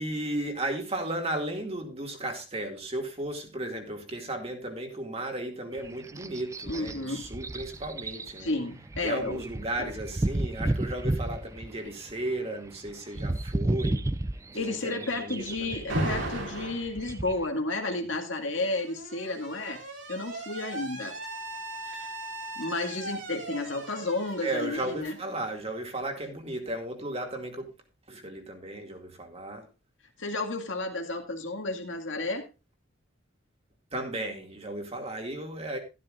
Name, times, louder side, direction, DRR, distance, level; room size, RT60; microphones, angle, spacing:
voice 1, 0.0-8.5 9.0-14.0 14.5-15.9 24.4-27.7 28.1-29.7 33.9-35.8, right 1 dB, 30° right, 2.2 m, -35 dB
sound 1, 5.7-17.5, right 1 dB, 15° right, 0.4 m, -33 dB
voice 2, 6.7-7.3 8.4-9.4 9.8-9.9 14.5-19.8 20.1-21.2 21.8-22.1 22.6-25.2 30.2-32.4, left 2 dB, 75° left, 2.1 m, -32 dB
Alarm, 15.9-16.9 18.1-25.8, right 1 dB, 75° right, 3.8 m, -37 dB
13.0 x 12.0 x 2.5 m
head